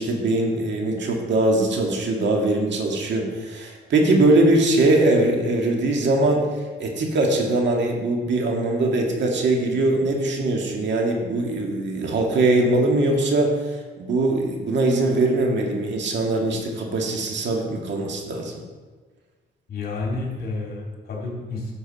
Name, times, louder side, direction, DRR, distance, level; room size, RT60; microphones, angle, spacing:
voice 1, 0.0-6.4 6.8-18.5, right 2 dB, 65° right, 1 dB, 1.9 m, -21 dB
voice 2, 19.7-21.7, left 3 dB, 50° left, -2 dB, 3.1 m, -30 dB
11.0 x 6.8 x 4.2 m, 1.3 s
cardioid pair, 90°, 20 cm